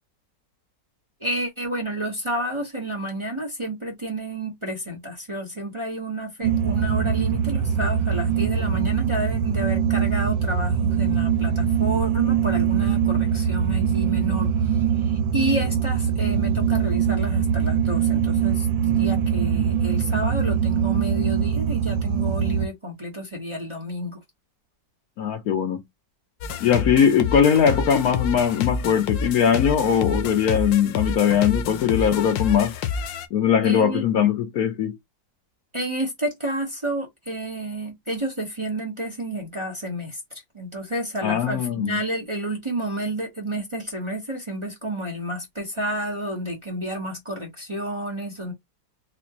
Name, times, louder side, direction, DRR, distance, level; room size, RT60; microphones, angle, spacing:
voice 1, 1.2-24.2 33.6-34.0 35.7-48.5, right 1 dB, 20° right, 1.0 m, -30 dB
sound 1, 6.4-22.7, right 8 dB, 85° right, 1.3 m, -22 dB
voice 2, 25.2-25.8 26.6-32.7 33.3-35.0 41.2-42.0, left 8 dB, 65° left, 1.0 m, -20 dB
sound 2, 26.4-33.3, left 5 dB, 85° left, 1.4 m, -29 dB
4.3 x 2.4 x 2.9 m
omnidirectional pair, 1.9 m